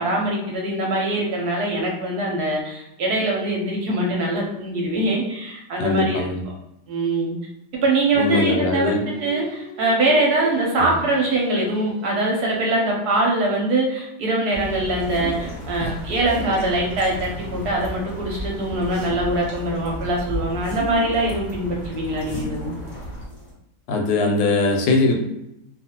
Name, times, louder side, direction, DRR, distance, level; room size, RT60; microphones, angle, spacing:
voice 1, 0.0-6.3 6.9-7.3 7.8-22.7, right 2 dB, 65° right, -2 dB, 1.1 m, -23 dB
voice 2, 5.8-6.4 8.2-9.1 10.8-10.9 23.9-25.1, left 3 dB, 80° left, 2 dB, 1.3 m, -20 dB
Singing, 8.3-13.4, right 3 dB, 85° right, 0.3 m, -42 dB
sound 1, 14.5-23.3, equal, 65° left, 0.8 m, -35 dB
sound 2, 15.0-23.5, left 1 dB, 30° left, 0.8 m, -36 dB
2.8 x 2.4 x 2.8 m, 0.86 s
omnidirectional pair, 2.0 m